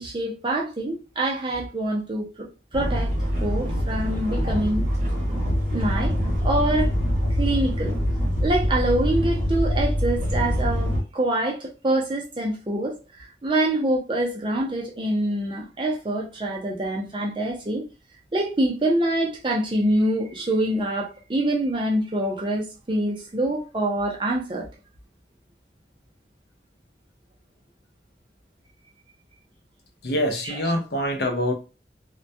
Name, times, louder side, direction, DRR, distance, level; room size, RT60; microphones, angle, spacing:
voice 1, 0.0-3.1 3.4-4.9 5.7-6.1 6.4-6.9 7.4-8.0 8.4-17.8 18.3-24.7 30.4-30.6, right 1 dB, 25° right, 0.5 m, -25 dB
sound 1, 2.7-11.0, equal, 45° right, 0.9 m, -24 dB
voice 2, 30.0-31.5, left 1 dB, 65° left, 0.6 m, -25 dB
2.2 x 2.2 x 2.6 m
head